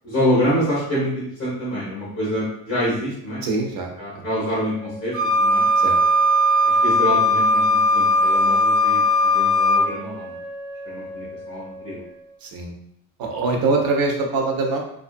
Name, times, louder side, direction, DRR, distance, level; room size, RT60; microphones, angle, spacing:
voice 1, 0.0-3.4 4.0-5.6 6.6-10.4 10.8-12.0, equal, 35° left, -10 dB, 1.1 m, -26 dB
voice 2, 3.4-4.2 5.8-6.0 12.4-12.7 13.2-14.8, right 3 dB, 70° right, 2 dB, 0.7 m, -23 dB
Wind instrument woodwind instrument, 4.6-12.4, right 1 dB, 30° right, 1.0 m, -37 dB
Wind instrument woodwind instrument 2, 5.1-9.8, left 1 dB, 5° right, 1.0 m, -18 dB
2.6 x 2.4 x 2.5 m, 0.74 s
cardioid pair, 160°, 38 cm